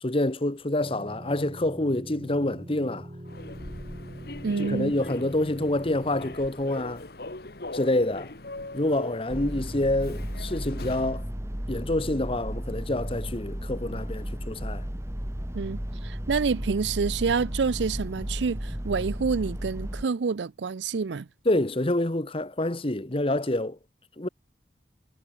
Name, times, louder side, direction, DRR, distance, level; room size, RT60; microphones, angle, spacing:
voice 1, 0.0-3.1 4.6-7.0 7.7-8.3 8.7-11.2 11.7-14.8 21.4-23.8 24.2-24.3, left 1 dB, 30° left, 1.2 m, -27 dB
sound 1, 0.8-6.4, equal, 30° right, 2.9 m, -42 dB
Human voice / Subway metro underground, 3.2-11.2, left 2 dB, 60° left, 2.0 m, -41 dB
voice 2, 4.4-4.9 15.5-15.8 16.0-21.3, right 5 dB, 85° right, 0.5 m, -27 dB
sound 2, 9.3-20.0, equal, 15° right, 1.8 m, -34 dB
head